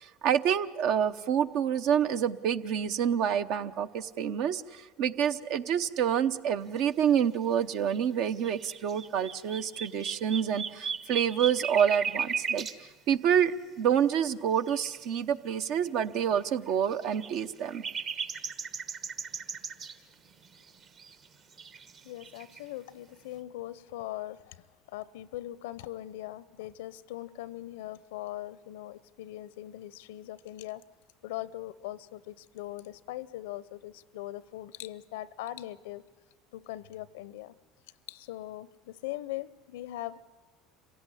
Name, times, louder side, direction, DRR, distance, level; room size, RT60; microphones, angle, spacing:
voice 1, 0.0-12.7 13.1-17.8, right 8 dB, 65° right, 0.8 m, -28 dB
sound 1, 7.9-8.0 8.3-12.8 14.7-15.1 15.9-16.0 16.3-16.4 16.8-20.0 20.4-21.3 21.5-22.6, right 6 dB, 45° right, 1.4 m, -36 dB
voice 2, 22.0-30.8 31.2-36.0 36.5-37.5 38.1-40.2, left 15 dB, 85° left, 0.6 m, -40 dB
26.5 x 16.5 x 9.9 m
supercardioid pair, 100°, 0 cm